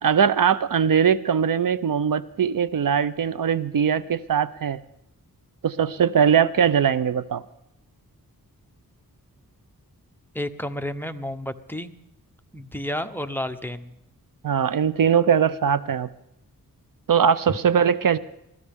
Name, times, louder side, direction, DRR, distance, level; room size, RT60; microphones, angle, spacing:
voice 1, 0.0-4.8 5.6-7.4 14.4-16.1 17.1-18.2, right 7 dB, 65° right, 16 dB, 0.6 m, -21 dB
voice 2, 10.3-11.9 12.5-13.9, left 1 dB, 5° left, 8 dB, 0.9 m, -31 dB
22.0 x 15.0 x 3.6 m, 0.83 s
wide cardioid pair, 75°, 36 cm